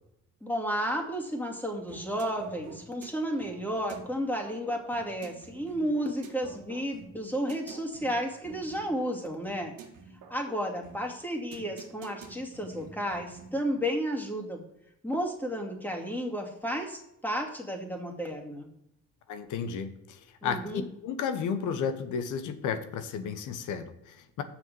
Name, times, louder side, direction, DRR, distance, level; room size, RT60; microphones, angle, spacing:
voice 1, 0.4-9.7 10.3-14.6 15.0-18.7 20.4-20.8, equal, 5° left, 2.5 m, -32 dB
sound 1, 1.9-13.7, right 5 dB, 70° right, 1.7 m, -49 dB
voice 2, 19.3-24.4, left 6 dB, 75° left, 1.1 m, -33 dB
6.6 x 6.6 x 6.8 m
cardioid pair, 85°, 31 cm